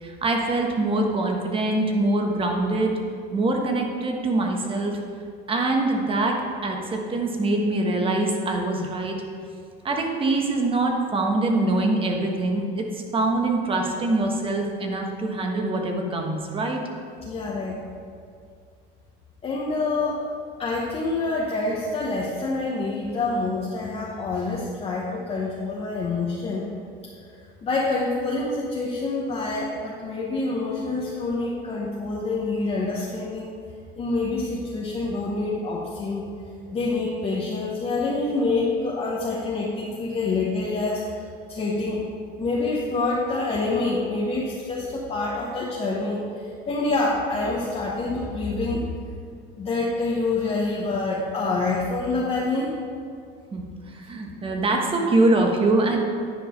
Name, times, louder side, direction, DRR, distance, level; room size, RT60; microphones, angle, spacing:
voice 1, 0.0-2.9 3.3-5.0 5.5-9.2 9.8-16.8 53.5-56.0, right 2 dB, 25° right, 2 dB, 1.3 m, -24 dB
voice 2, 17.2-17.8 19.4-20.2 20.6-26.7 27.6-33.5 34.0-36.3 36.7-41.0 41.5-42.1 42.4-48.8 49.6-52.7, left 3 dB, 30° left, -4 dB, 1.1 m, -26 dB
10.0 x 4.7 x 5.2 m, 2.2 s
cardioid pair, 120°, 20 cm